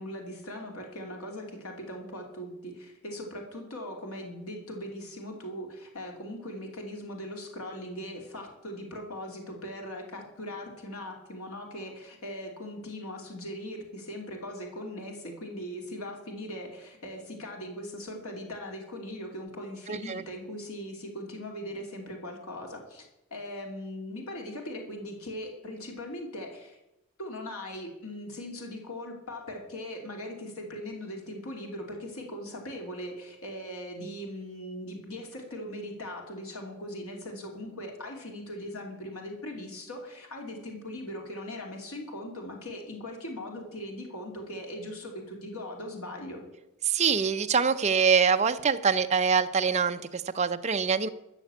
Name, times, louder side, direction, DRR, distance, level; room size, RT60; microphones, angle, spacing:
voice 1, 0.0-23.0 23.3-26.8 27.2-46.4, left 1 dB, 85° left, 1 dB, 2.7 m, -40 dB
voice 2, 19.9-20.2 46.9-51.1, right 6 dB, 30° right, 9 dB, 0.6 m, -24 dB
14.0 x 6.8 x 8.1 m, 0.90 s
head